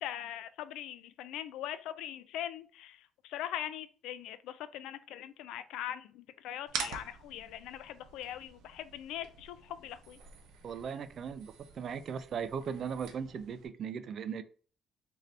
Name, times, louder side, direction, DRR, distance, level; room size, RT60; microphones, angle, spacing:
voice 1, 0.0-3.0 3.2-10.2, left 11 dB, 90° left, 13 dB, 0.3 m, -41 dB
sound 1, 6.7-13.7, right 6 dB, 80° right, 0.7 m, -46 dB
voice 2, 10.6-14.4, right 7 dB, 45° right, 11 dB, 0.4 m, -38 dB
3.3 x 2.7 x 3.9 m, 0.41 s
cardioid pair, 140°, 0 cm